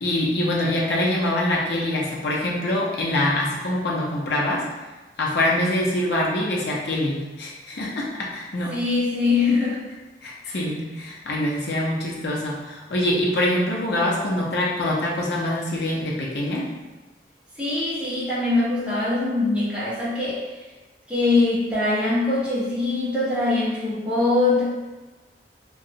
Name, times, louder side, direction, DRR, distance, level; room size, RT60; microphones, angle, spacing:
voice 1, 0.0-4.6 5.2-8.7 10.2-16.7, left 1 dB, 70° left, -4 dB, 0.6 m, -24 dB
voice 2, 8.7-9.8 10.4-10.6 17.6-20.4 21.1-24.6, left 3 dB, 5° right, -10 dB, 1.0 m, -22 dB
2.8 x 2.2 x 2.7 m, 1.2 s
head